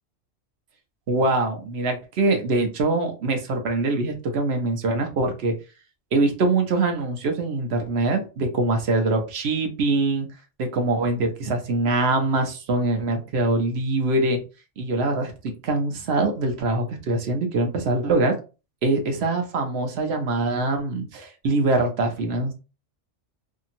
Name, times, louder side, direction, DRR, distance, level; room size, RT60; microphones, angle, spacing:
voice 1, 1.1-5.5 6.1-10.3 10.6-14.4 14.8-18.4 18.8-22.5, right 2 dB, 60° right, 4 dB, 0.9 m, -23 dB
2.8 x 2.7 x 2.5 m, 0.31 s
omnidirectional pair, 1.3 m